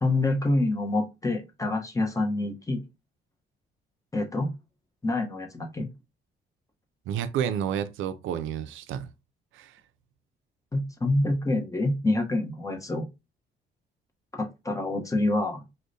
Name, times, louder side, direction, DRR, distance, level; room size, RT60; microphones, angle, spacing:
voice 1, 0.0-2.8 4.1-4.5 5.0-5.9 10.7-13.1 14.3-15.6, left 2 dB, 15° left, 0.8 m, -27 dB
voice 2, 7.1-9.1 9.5-9.8, right 9 dB, 85° right, 0.4 m, -30 dB
4.6 x 2.1 x 2.6 m
cardioid pair, 90°, 20 cm